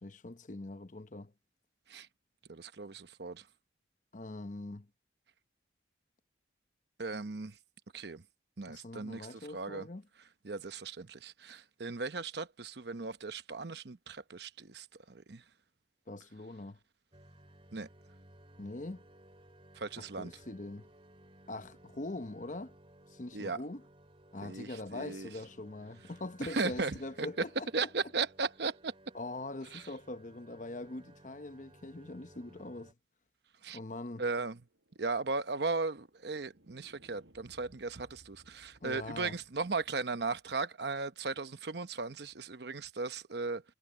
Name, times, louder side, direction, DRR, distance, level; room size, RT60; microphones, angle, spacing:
voice 1, 0.0-1.3 4.1-4.9 8.7-10.1 16.1-16.8 18.6-19.0 20.0-20.9 21.5-22.7 23.1-23.8 24.3-27.9 29.1-32.9 33.7-34.2 38.8-39.4, left 2 dB, 45° left, 0.9 m, -43 dB
voice 2, 2.5-3.4 7.0-7.5 7.9-8.2 8.6-9.9 10.4-15.4 17.7-17.9 19.7-20.3 23.3-23.6 24.4-25.3 26.5-27.3 27.7-28.9 29.7-29.8 33.6-33.8 34.2-34.6 35.0-43.6, right 4 dB, 65° right, 0.9 m, -37 dB
sound 1, 17.1-32.9, right 1 dB, 30° right, 3.9 m, -59 dB
sound 2, 34.6-39.9, equal, 85° right, 7.7 m, -64 dB
head